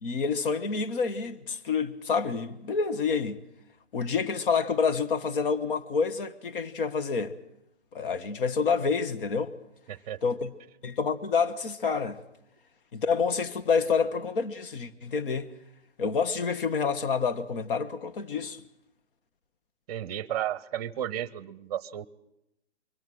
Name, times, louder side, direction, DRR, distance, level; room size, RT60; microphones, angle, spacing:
voice 1, 0.0-3.4 3.9-7.3 7.9-9.5 10.2-10.5 10.8-12.2 12.9-15.5 16.0-18.6, left 5 dB, 50° left, 1.4 m, -28 dB
voice 2, 9.9-10.2 19.9-22.1, right 11 dB, 35° right, 0.8 m, -33 dB
23.0 x 18.0 x 7.7 m
hypercardioid pair, 140°, 34 cm